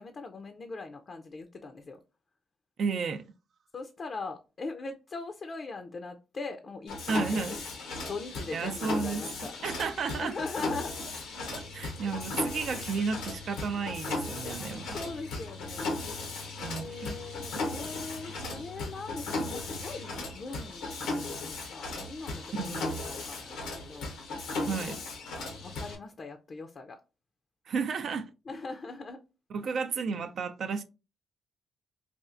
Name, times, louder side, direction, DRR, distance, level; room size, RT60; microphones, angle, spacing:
voice 1, 0.0-2.0 3.7-7.4 8.0-9.5 10.1-10.9 12.0-12.2 14.9-16.0 16.8-24.1 25.3-27.0 28.5-29.2 29.6-29.8, left 3 dB, 55° left, 0.4 m, -41 dB
voice 2, 2.8-3.2 7.1-7.6 8.5-9.2 9.6-10.3 11.5-15.0 16.6-17.1 22.5-22.9 24.6-25.0 27.7-28.3 29.5-30.8, right 5 dB, 65° right, 0.4 m, -32 dB
Mechanisms, 6.9-25.9, left 2 dB, 90° left, 0.7 m, -36 dB
sound 1, 11.8-13.2 14.5-15.4 16.6-16.9, right 2 dB, 90° right, 0.7 m, -54 dB
4.2 x 2.4 x 2.4 m
supercardioid pair, 55°, 0 cm